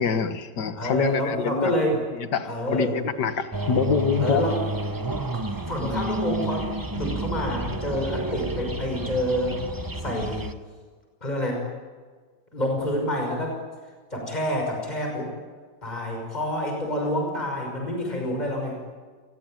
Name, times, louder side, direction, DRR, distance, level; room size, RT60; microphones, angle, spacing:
voice 1, 0.0-1.7 2.1-4.5, left 6 dB, 65° left, 10 dB, 2.1 m, -25 dB
voice 2, 0.7-2.0 2.4-3.0 4.2-4.5 5.7-9.6 10.0-10.5 11.2-11.6 12.5-13.6 14.1-15.3 15.8-18.8, equal, 20° left, 1 dB, 6.0 m, -27 dB
sound 1, 3.5-10.5, right 1 dB, 15° right, 0.7 m, -30 dB
27.0 x 20.5 x 9.1 m, 1.5 s
omnidirectional pair, 2.0 m